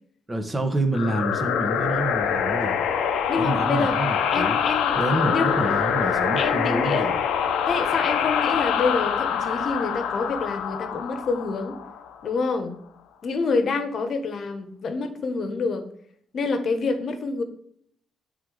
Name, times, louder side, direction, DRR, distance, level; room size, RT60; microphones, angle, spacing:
voice 1, 0.3-2.8 3.4-4.6 4.9-7.1, right 1 dB, 15° right, 5 dB, 1.1 m, -27 dB
sound 1, 0.9-12.3, left 7 dB, 85° left, 0.6 m, -25 dB
voice 2, 3.3-4.0 4.3-5.0 5.2-5.7 6.4-7.1 7.7-11.8 12.2-12.8 13.2-15.8 16.3-17.4, left 4 dB, 55° left, 8 dB, 1.0 m, -27 dB
7.4 x 3.9 x 4.8 m, 0.65 s
cardioid pair, 90°, 0 cm